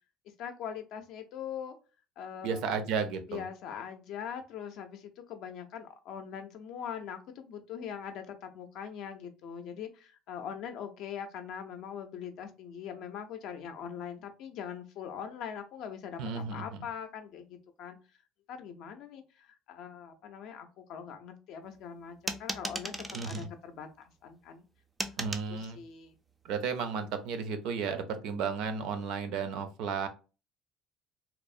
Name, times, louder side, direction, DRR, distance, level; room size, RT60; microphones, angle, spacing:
voice 1, 0.4-1.7 2.2-2.8 3.3-18.0 18.5-22.9 23.2-24.6 25.5-26.1, left 8 dB, 55° left, 0.4 m, -42 dB
voice 2, 2.4-3.4 16.2-16.8 23.1-23.5 25.2-25.8 26.4-30.1, right 5 dB, 65° right, 0.5 m, -33 dB
sound 1, 22.3-23.5 25.0-25.5, right 2 dB, 10° right, 0.3 m, -36 dB
2.9 x 2.0 x 2.4 m
cardioid pair, 150°, 0 cm